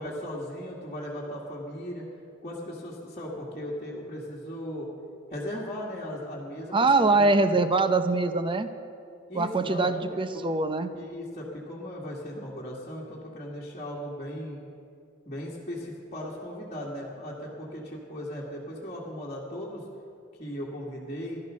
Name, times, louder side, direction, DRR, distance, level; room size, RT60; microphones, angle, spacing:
voice 1, 0.0-2.1 2.4-4.9 5.3-7.6 9.3-10.5 10.9-14.6 15.3-19.8 20.4-21.4, equal, 30° left, -7 dB, 1.9 m, -37 dB
voice 2, 6.7-8.7 9.3-10.9, right 3 dB, 25° right, 10 dB, 0.7 m, -23 dB
15.5 x 12.0 x 6.3 m, 2.6 s
head